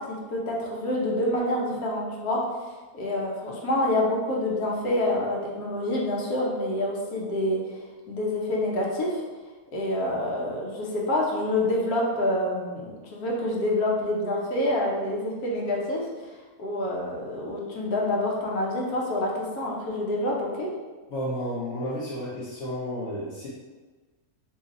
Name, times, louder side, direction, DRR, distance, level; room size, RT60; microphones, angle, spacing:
voice 1, 0.0-2.4 2.9-7.8 8.1-9.2 9.7-16.3 16.6-20.7, left 1 dB, 80° left, -3 dB, 1.2 m, -27 dB
voice 2, 21.1-23.5, equal, 55° left, -10 dB, 1.1 m, -32 dB
3.0 x 2.8 x 3.8 m, 1.3 s
omnidirectional pair, 1.6 m